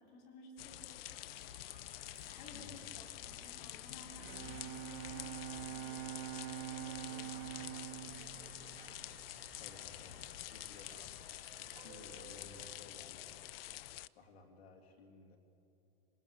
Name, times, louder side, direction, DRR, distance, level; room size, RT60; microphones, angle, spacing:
voice 1, 0.0-1.5 2.2-9.1, left 2 dB, 35° left, 1 dB, 4.0 m, -58 dB
sound 1, 0.6-14.1, left 15 dB, 70° left, 0.5 m, -48 dB
Subway metro underground, 1.0-12.7, right 9 dB, 70° right, 2.6 m, -61 dB
voice 2, 2.5-3.0 9.6-13.6 14.1-15.4, left 3 dB, 90° left, 3 dB, 2.8 m, -58 dB
Bowed string instrument, 4.0-9.7, right 15 dB, 35° right, 0.5 m, -46 dB
26.5 x 20.0 x 7.7 m, 2.7 s
supercardioid pair, 160°, 30 cm